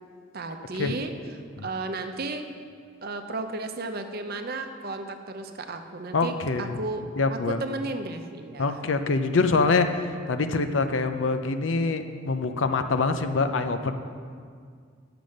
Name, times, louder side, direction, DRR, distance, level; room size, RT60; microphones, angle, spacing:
voice 1, 0.3-1.1 1.6-2.5 3.0-7.0 7.3-8.8, right 2 dB, 50° right, 6 dB, 0.7 m, -33 dB
voice 2, 6.1-6.8 7.2-7.6 8.6-14.0, left 3 dB, 75° left, 8 dB, 0.6 m, -25 dB
9.2 x 6.9 x 6.4 m, 2.1 s
head